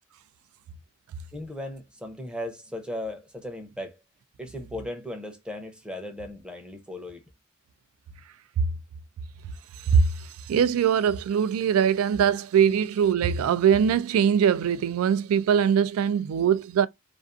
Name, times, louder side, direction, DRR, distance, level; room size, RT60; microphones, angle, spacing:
voice 1, 1.3-4.0 4.4-7.2 12.7-12.8, left 1 dB, 5° right, 0.5 m, -37 dB
voice 2, 9.8-16.9, right 7 dB, 85° right, 0.3 m, -22 dB
2.5 x 2.4 x 2.3 m
head